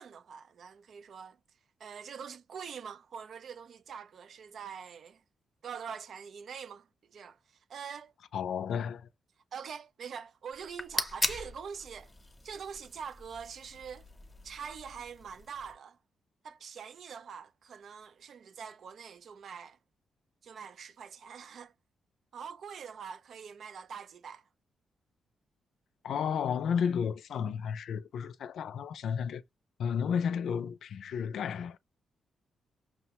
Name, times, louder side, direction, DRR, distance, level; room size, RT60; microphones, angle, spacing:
voice 1, 0.0-1.4 1.8-5.2 5.6-8.1 9.5-12.1 12.4-14.1 14.4-16.0 16.4-19.8 20.4-21.7 22.3-24.4, right 7 dB, 60° right, 0.4 m, -44 dB
voice 2, 8.3-9.1 26.0-29.4 29.8-31.8, left 7 dB, 75° left, 0.4 m, -32 dB
sound 1, 10.5-15.7, left 2 dB, 20° left, 0.7 m, -39 dB
6.1 x 2.1 x 2.9 m
cardioid pair, 115°, 0 cm